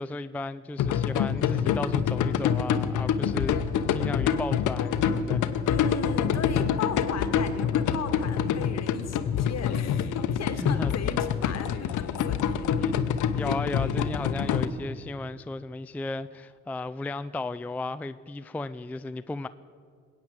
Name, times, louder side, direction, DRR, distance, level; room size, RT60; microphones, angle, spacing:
voice 1, 0.0-3.6 3.9-5.4 10.6-10.9 12.7-19.5, left 2 dB, 5° left, 13 dB, 0.3 m, -35 dB
sound 1, 0.8-14.7, left 8 dB, 80° left, 0.9 m, -26 dB
voice 2, 5.7-12.7 13.0-13.2, left 6 dB, 60° left, 8 dB, 1.6 m, -37 dB
20.5 x 9.0 x 7.8 m, 2.1 s
cardioid pair, 90°, 30 cm